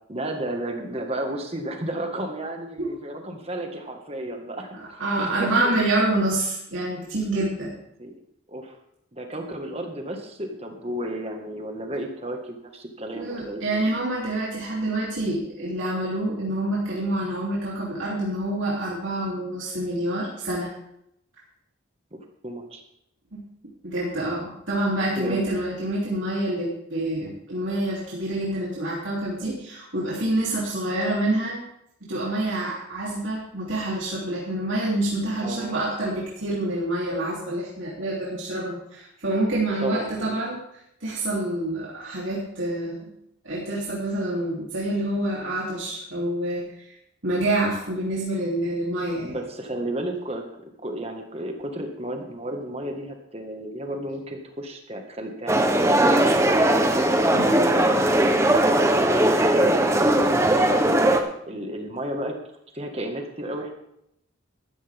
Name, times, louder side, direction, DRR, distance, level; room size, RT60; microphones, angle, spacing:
voice 1, 0.1-4.8 5.2-5.7 8.0-8.2 8.5-8.8 9.1-13.8 22.4-22.8 25.2-25.4 35.4-35.8 39.8-40.4 49.2-50.4 50.8-56.7 57.7-61.0 61.4-62.4 62.7-63.7, right 1 dB, 30° right, 3 dB, 1.7 m, -33 dB
voice 2, 5.0-7.7 13.1-20.7 23.3-23.4 23.8-31.6 32.1-40.6 41.0-43.1 43.4-46.9 47.2-49.4 57.3-57.8, right 1 dB, 75° right, -6 dB, 3.2 m, -27 dB
sound 1, 55.5-61.2, right 1 dB, 15° right, 0.9 m, -19 dB
13.0 x 13.0 x 3.6 m, 0.77 s
head